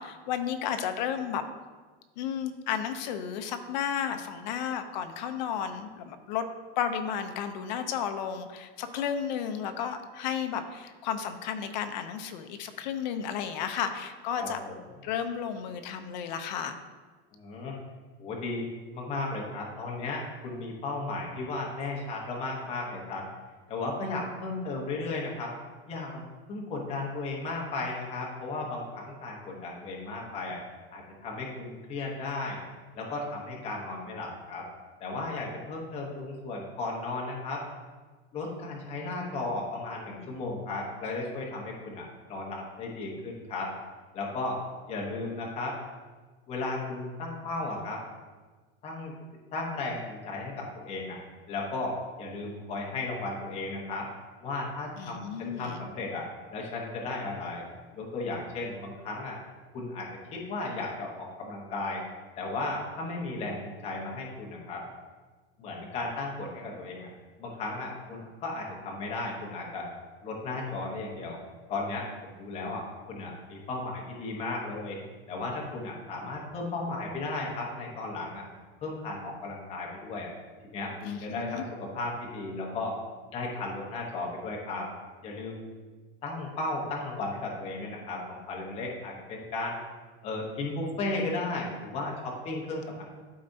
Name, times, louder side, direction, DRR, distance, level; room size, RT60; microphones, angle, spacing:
voice 1, 0.0-1.4 2.2-6.5 6.8-14.6 15.0-16.8 55.0-55.8 81.0-81.6, left 8 dB, 45° left, 7 dB, 0.6 m, -33 dB
voice 2, 14.4-14.8 17.3-17.7 18.2-23.2 23.7-25.5 25.9-26.2 26.5-30.6 30.9-32.6 32.9-34.7 35.0-37.6 38.3-43.7 44.1-44.6 44.9-45.8 46.5-48.0 48.8-49.1 49.5-51.2 51.5-54.1 54.4-57.6 57.9-59.4 59.7-62.0 62.4-64.8 65.6-67.1 67.4-69.9 70.2-71.4 71.7-75.0 75.3-78.5 78.8-80.3 80.6-82.9 83.3-84.9 85.2-85.6 86.2-89.8 90.2-93.0, left 2 dB, 20° left, -2 dB, 1.0 m, -35 dB
12.5 x 4.2 x 2.7 m, 1.4 s
supercardioid pair, 180°, 33 cm